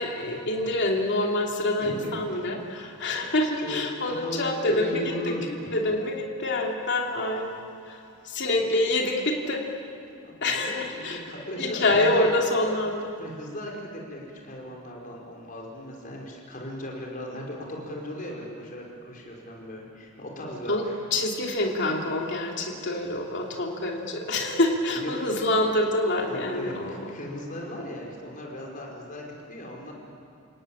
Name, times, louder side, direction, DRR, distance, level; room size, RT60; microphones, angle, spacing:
voice 1, 0.0-5.3 5.7-7.6 7.9-8.0 8.2-9.6 10.4-11.2 11.6-13.1 20.7-26.9, left 1 dB, 60° left, 0 dB, 3.0 m, -26 dB
voice 2, 1.8-2.5 3.6-3.8 4.0-5.7 8.2-8.3 8.5-8.7 10.4-12.2 13.2-20.9 24.9-25.1 26.3-29.2 29.5-29.9, equal, 40° left, -1 dB, 5.0 m, -37 dB
29.5 x 17.5 x 8.8 m, 2.5 s
head